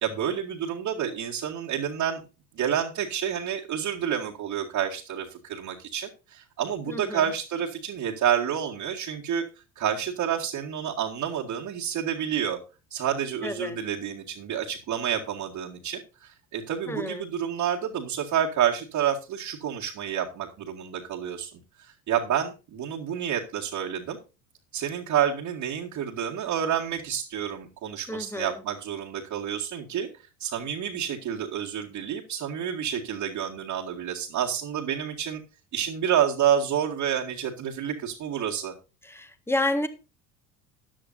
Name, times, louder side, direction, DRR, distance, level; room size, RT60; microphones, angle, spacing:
voice 1, 0.0-2.2 2.6-9.4 9.8-12.6 12.9-21.5 21.8-24.2 24.7-30.1 30.4-35.4 35.7-38.7, right 9 dB, 45° right, 2.1 m, -29 dB
voice 2, 6.9-7.2 13.4-13.8 16.9-17.2 28.1-28.6 39.0-39.9, left 2 dB, 5° left, 1.7 m, -30 dB
14.0 x 9.9 x 2.7 m
hypercardioid pair, 70°, 41 cm